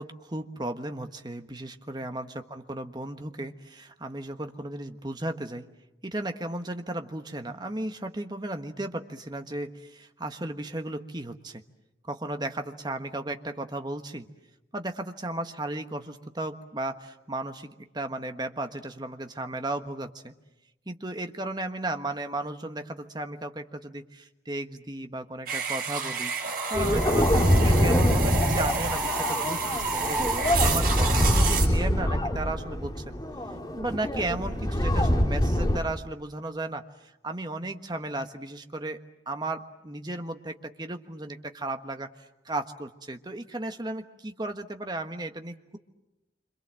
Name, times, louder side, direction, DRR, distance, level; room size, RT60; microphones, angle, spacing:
voice 1, 0.0-5.7 6.0-11.6 12.1-14.2 14.7-20.3 20.9-26.3 26.7-30.2 30.6-33.2 33.7-36.8 37.2-39.0 39.3-42.1 42.4-45.8, right 2 dB, 25° right, 7 dB, 1.4 m, -35 dB
sound 1, 25.5-31.7, right 4 dB, 55° right, 5.4 m, -29 dB
sound 2, 26.7-35.8, equal, 20° left, 2.5 m, -24 dB
28.0 x 26.0 x 7.6 m, 0.96 s
head